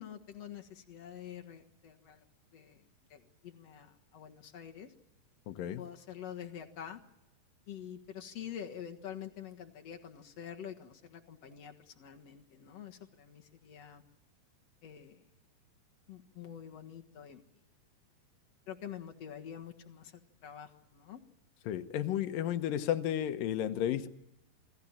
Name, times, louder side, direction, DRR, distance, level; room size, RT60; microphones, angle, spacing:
voice 1, 0.0-2.2 2.5-2.8 3.1-4.9 5.8-7.0 7.7-14.0 14.8-15.2 16.1-17.4 18.7-21.2, left 9 dB, 55° left, 2.3 m, -47 dB
voice 2, 5.5-5.8 21.7-24.1, left 11 dB, 75° left, 2.8 m, -33 dB
28.0 x 19.0 x 7.3 m
omnidirectional pair, 4.1 m